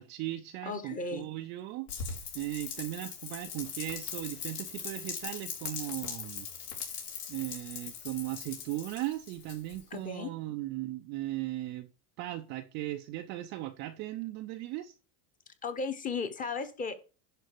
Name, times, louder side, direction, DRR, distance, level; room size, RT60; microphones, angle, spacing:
voice 1, 0.0-6.5 6.8-6.9 7.3-11.9 12.2-14.9, right 16 dB, 25° right, 0.4 m, -37 dB
voice 2, 0.6-1.3 9.9-10.3 15.6-16.9, left 4 dB, 20° left, 1.1 m, -35 dB
Rain, 1.9-10.0, left 7 dB, 75° left, 4.7 m, -40 dB
11.0 x 4.0 x 6.5 m
supercardioid pair, 145°, 45 cm